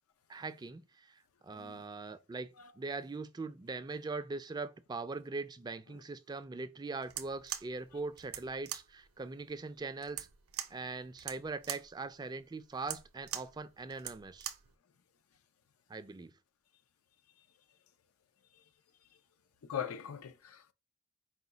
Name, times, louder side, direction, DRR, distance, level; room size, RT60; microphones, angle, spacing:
voice 1, 0.3-10.3 10.6-14.5 15.9-16.3, right 3 dB, 20° right, 0.3 m, -41 dB
voice 2, 1.5-1.8 19.7-20.7, left 8 dB, 90° left, 0.5 m, -40 dB
sound 1, 7.0-14.7, right 11 dB, 75° right, 0.5 m, -44 dB
4.9 x 2.2 x 3.9 m
head